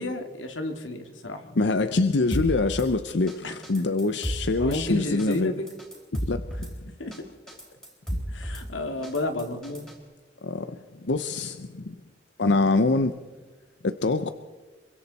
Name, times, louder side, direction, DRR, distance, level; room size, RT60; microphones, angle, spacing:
voice 1, 0.0-1.4 3.4-3.5 4.6-5.7 7.0-7.1 8.3-9.9, left 2 dB, 85° left, 5 dB, 2.4 m, -31 dB
voice 2, 1.6-5.5 6.2-6.7 10.4-11.9 12.4-13.2 13.8-14.3, left 3 dB, 65° left, 10 dB, 0.7 m, -25 dB
Drum kit / Snare drum, 2.3-2.9 3.3-3.4 3.6-4.8 5.2-5.4 5.7-6.7 7.1-7.2 7.5-8.6 9.0-10.0, equal, 5° left, 4.6 m, -33 dB
26.5 x 24.0 x 4.2 m, 1.4 s
head